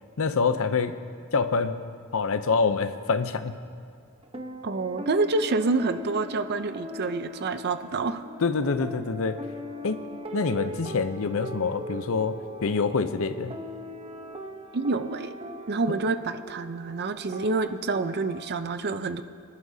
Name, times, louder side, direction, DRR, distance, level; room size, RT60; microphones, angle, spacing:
voice 1, 0.2-0.9 1.3-1.7 2.1-3.5 8.4-9.4 9.8-10.0 10.3-13.5, left 4 dB, 70° left, 11 dB, 0.6 m, -26 dB
sound 1, 4.2-18.6, equal, 25° right, 0.9 m, -40 dB
voice 2, 4.6-8.2 14.7-15.3 15.7-19.2, right 3 dB, 50° right, 10 dB, 0.6 m, -27 dB
25.0 x 11.5 x 2.8 m, 2.3 s
head